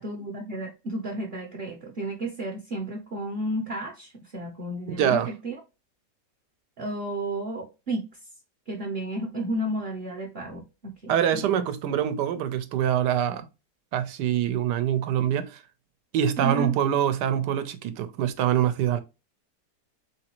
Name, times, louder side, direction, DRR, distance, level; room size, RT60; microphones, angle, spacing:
voice 1, 0.0-5.6 6.8-8.1 8.7-11.7 16.4-16.8, right 1 dB, 45° right, 0.9 m, -32 dB
voice 2, 5.0-5.3 11.1-13.5 13.9-15.6 16.1-19.0, right 9 dB, 80° right, 1.3 m, -24 dB
4.0 x 3.7 x 2.9 m
omnidirectional pair, 1.8 m